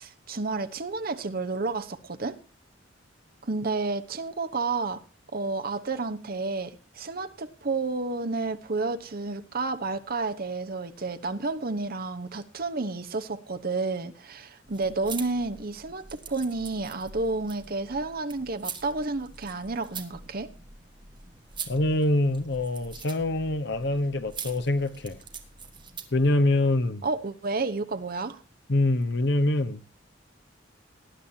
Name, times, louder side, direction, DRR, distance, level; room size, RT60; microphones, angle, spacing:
voice 1, 0.0-2.4 3.4-5.0 5.3-20.5 27.0-28.4, right 3 dB, 50° right, 1.0 m, -31 dB
sound 1, 14.6-26.3, right 6 dB, 25° right, 1.6 m, -43 dB
voice 2, 21.7-25.2 26.1-27.0 28.7-29.8, left 2 dB, 65° left, 1.0 m, -25 dB
19.0 x 10.5 x 2.8 m
head